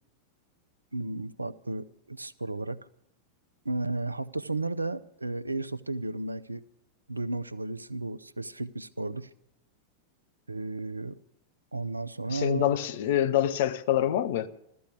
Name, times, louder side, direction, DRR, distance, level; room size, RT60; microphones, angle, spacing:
voice 1, 0.9-2.9 3.6-6.6 7.1-9.3 10.5-11.2 11.7-12.7, right 2 dB, 80° right, 0.5 m, -33 dB
voice 2, 12.3-14.5, left 11 dB, 55° left, 0.8 m, -26 dB
16.0 x 13.0 x 6.8 m
figure-of-eight pair, 90°, 0 cm